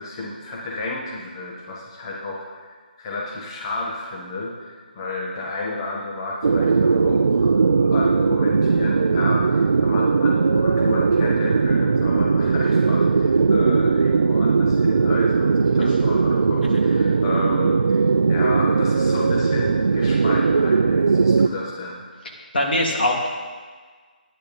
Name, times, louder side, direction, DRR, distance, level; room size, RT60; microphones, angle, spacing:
voice 1, 0.0-2.7 3.0-22.0, left 2 dB, 30° left, -2 dB, 1.6 m, -32 dB
sound 1, 6.4-21.5, right 4 dB, 70° right, 0.5 m, -19 dB
voice 2, 22.5-23.3, left 1 dB, 80° left, -1 dB, 3.0 m, -22 dB
11.0 x 10.0 x 5.4 m, 1.5 s
hypercardioid pair, 160°, 5 cm